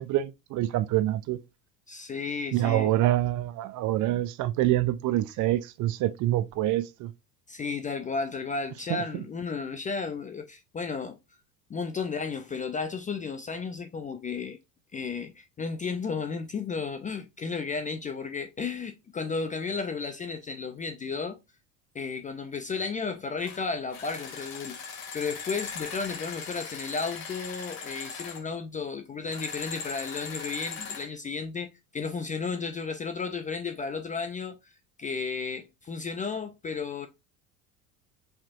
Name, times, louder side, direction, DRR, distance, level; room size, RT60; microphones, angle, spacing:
voice 1, 0.0-1.4 2.5-7.1, right 14 dB, 40° right, 0.5 m, -26 dB
voice 2, 1.9-2.9 7.5-11.2 11.7-14.6 14.9-21.4 21.9-24.8 25.1-34.7 35.0-37.1, left 5 dB, 15° left, 0.4 m, -33 dB
sound 1, 23.4-23.6 23.9-28.4 29.3-31.1, left 5 dB, 45° left, 1.5 m, -39 dB
4.9 x 3.5 x 2.4 m
hypercardioid pair, 70°, 49 cm